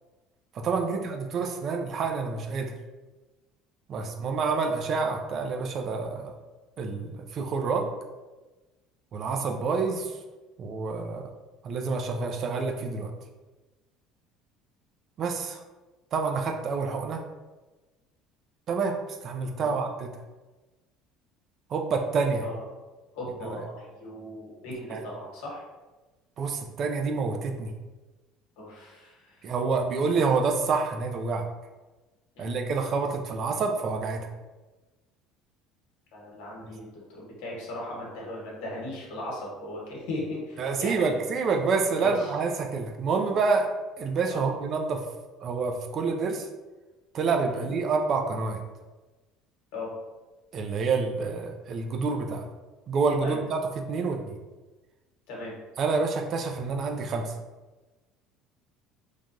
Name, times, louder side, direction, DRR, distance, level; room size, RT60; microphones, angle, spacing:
voice 1, 0.5-2.7 3.9-6.3 6.8-7.9 9.1-10.1 10.6-11.3 11.6-13.1 15.2-15.6 16.1-17.3 18.7-20.1 21.7-22.5 23.4-23.6 24.9-25.0 26.4-27.7 29.4-31.5 32.4-34.3 40.6-43.7 44.0-45.0 45.4-46.5 47.1-48.6 50.5-52.4 52.9-54.4 55.8-57.3, right 4 dB, 40° right, 4 dB, 0.3 m, -28 dB
voice 2, 23.1-25.6 28.6-29.5 32.4-32.6 36.1-41.2 42.0-42.3 44.3-44.5 47.5-47.7 49.7-49.9 53.2-53.4 55.3-55.5, left 1 dB, 80° left, -4 dB, 1.1 m, -38 dB
3.2 x 2.2 x 2.5 m, 1.2 s
cardioid pair, 150°, 0 cm